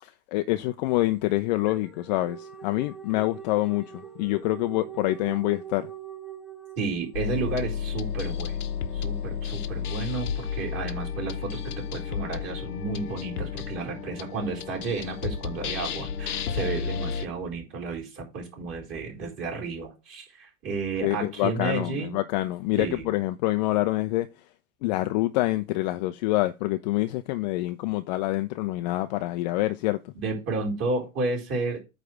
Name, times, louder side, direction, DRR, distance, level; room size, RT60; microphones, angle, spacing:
voice 1, 0.0-5.9 21.0-24.3 24.8-30.1, left 18 dB, 30° left, 0.4 m, -26 dB
sound 1, 1.0-7.4, right 8 dB, ahead, 0.9 m, -43 dB
voice 2, 6.8-8.6 8.9-11.6 11.9-22.2 22.8-23.1 30.1-31.8, right 3 dB, 30° right, 4.4 m, -32 dB
sound 2, 7.1-17.3, left 7 dB, 80° left, 0.9 m, -32 dB
9.0 x 3.3 x 6.1 m
hypercardioid pair, 100°, 45 cm